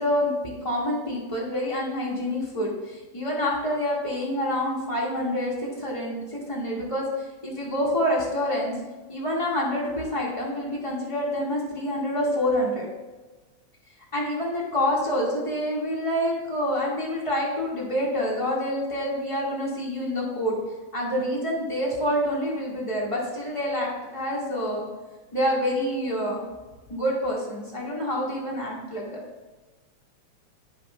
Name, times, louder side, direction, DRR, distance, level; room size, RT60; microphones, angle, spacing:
voice 1, 0.0-8.7 9.1-12.9 14.1-20.5 20.9-24.8 25.3-26.4 26.9-29.2, equal, 15° left, -5 dB, 1.0 m, -27 dB
12.5 x 5.2 x 2.2 m, 1.2 s
omnidirectional pair, 3.4 m